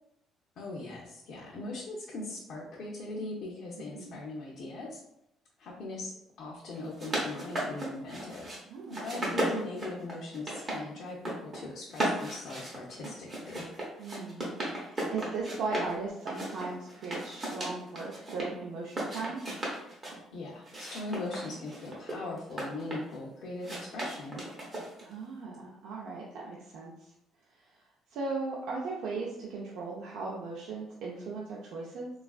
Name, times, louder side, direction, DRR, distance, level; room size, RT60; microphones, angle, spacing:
voice 1, 0.6-5.0 5.6-8.5 8.9-13.7 20.3-24.4, left 2 dB, 50° left, -4 dB, 0.5 m, -40 dB
voice 2, 3.8-4.2 8.7-9.0 14.0-19.4 25.0-27.1 27.6-27.7 28.1-32.1, right 3 dB, 70° right, -4 dB, 0.5 m, -38 dB
sound 1, 6.7-8.6 8.9-10.8 11.1-11.6 11.9-15.9 16.3-18.5 18.9-20.2 20.7-23.2 23.6-25.1, right 1 dB, 25° right, 0.8 m, -36 dB
3.3 x 2.3 x 2.3 m, 0.82 s
cardioid pair, 155°, 0 cm